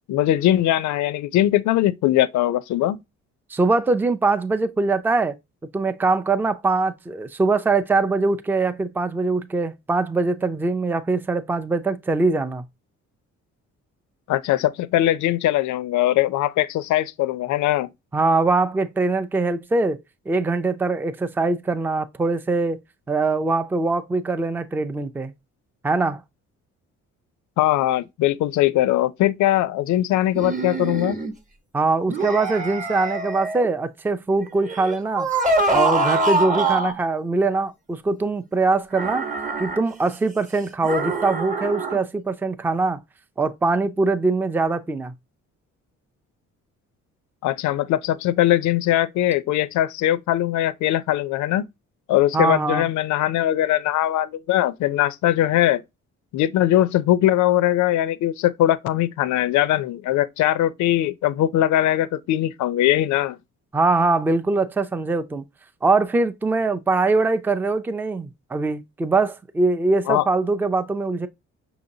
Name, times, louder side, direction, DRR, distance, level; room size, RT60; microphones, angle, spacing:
voice 1, 0.1-3.0 14.3-17.9 27.6-31.2 47.4-51.7 52.1-55.8 56.3-63.4 70.1-70.3, left 13 dB, 70° left, 0.4 m, -21 dB
voice 2, 3.5-5.3 5.7-12.6 18.1-20.0 20.3-22.8 23.1-25.3 25.8-26.2 31.7-35.3 35.7-39.3 39.6-43.0 43.4-45.1 52.3-52.8 63.7-65.4 65.8-71.3, right 3 dB, 5° right, 0.3 m, -22 dB
sound 1, 30.3-31.3 32.1-33.7 34.7-37.0 38.9-39.8 40.8-42.0, right 2 dB, 25° right, 0.9 m, -24 dB
5.8 x 2.8 x 2.7 m
cardioid pair, 90°, 30 cm